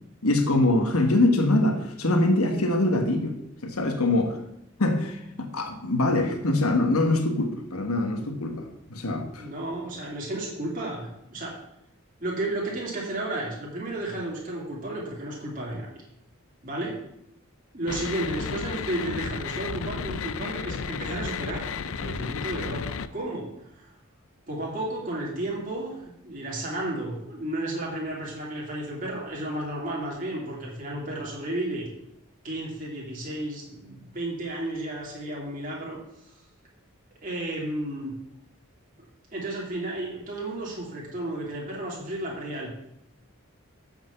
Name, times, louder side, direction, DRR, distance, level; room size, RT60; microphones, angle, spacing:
voice 1, 0.2-3.4 3.6-4.4 4.8-9.5, left 2 dB, 85° left, 5 dB, 1.4 m, -24 dB
voice 2, 9.4-11.5 12.2-15.9 16.6-17.0 17.7-23.5 23.8-23.9 24.5-31.9 32.4-36.4 37.2-38.1 39.0-39.1 39.3-42.7, right 1 dB, 40° right, -4 dB, 2.7 m, -33 dB
sound 1, 17.9-23.1, left 6 dB, 65° left, 0.5 m, -33 dB
8.0 x 6.0 x 7.0 m, 0.79 s
head